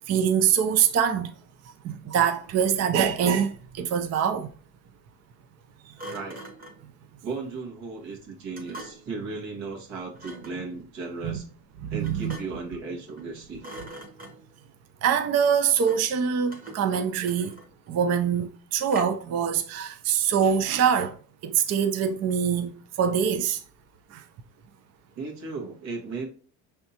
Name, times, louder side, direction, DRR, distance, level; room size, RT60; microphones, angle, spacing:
voice 1, 0.1-1.3 1.8-4.5 11.2-11.4 11.9-12.3 15.0-17.5 17.9-21.1 21.4-22.7 23.0-23.6 24.1-24.2, right 8 dB, 40° right, 0.4 m, -24 dB
Thump thud, 2.4-3.2 6.0-6.9 8.5-9.2 10.1-10.6 12.0-12.7 13.1-13.3 13.6-14.6 15.8-16.2 16.5-17.9 18.9-19.3, right 1 dB, 20° right, 1.0 m, -44 dB
voice 2, 6.1-6.4 7.2-11.4 11.9-13.7 25.2-26.3, right 4 dB, 80° right, 1.8 m, -36 dB
5.5 x 3.4 x 2.8 m
cardioid pair, 105°, 44 cm